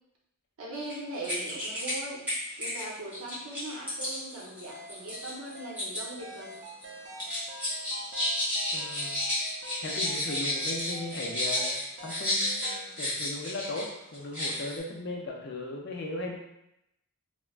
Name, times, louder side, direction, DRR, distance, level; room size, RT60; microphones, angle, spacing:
voice 1, 0.6-2.3 2.6-6.6, right 1 dB, 75° right, -3 dB, 0.7 m, -40 dB
sound 1, 0.8-0.9 1.2-2.0 2.3-6.0 6.3-6.8 7.2-13.9 14.1-14.8, left 1 dB, 5° right, 0.8 m, -32 dB
sound 2, 4.7-13.0, equal, 55° right, 0.4 m, -45 dB
voice 2, 8.7-9.2 9.8-16.4, left 2 dB, 50° left, -1 dB, 0.4 m, -37 dB
3.2 x 2.1 x 2.3 m, 0.85 s
head